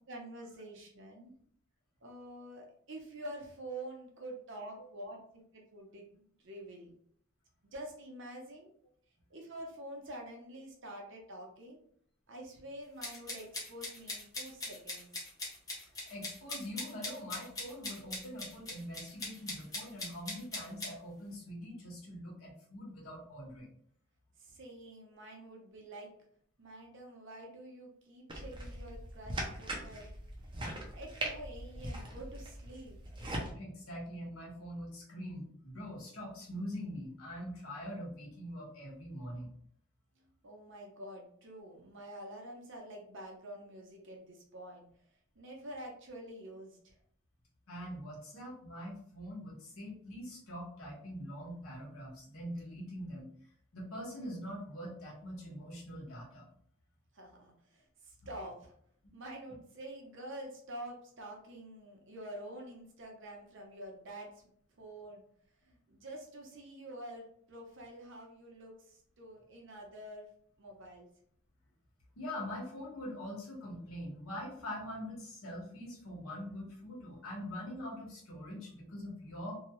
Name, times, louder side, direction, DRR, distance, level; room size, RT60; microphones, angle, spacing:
voice 1, 0.1-1.3 2.0-6.9 7.6-8.7 9.3-11.8 12.3-15.1 24.4-26.1 26.6-30.1 30.9-33.0 40.2-44.9 45.4-47.0 57.1-58.7 59.1-64.4 64.8-65.2 65.6-70.3 70.6-71.1, right 1 dB, 60° right, 1 dB, 0.8 m, -47 dB
sound 1, 13.0-20.9, left 2 dB, 15° left, 0.8 m, -41 dB
voice 2, 16.0-23.7 28.3-28.4 33.5-39.5 47.7-53.3 53.7-56.5 72.2-79.6, equal, 80° left, -3 dB, 1.2 m, -43 dB
sound 2, 28.3-33.5, right 1 dB, 25° right, 0.5 m, -41 dB
2.7 x 2.3 x 3.0 m, 0.63 s
head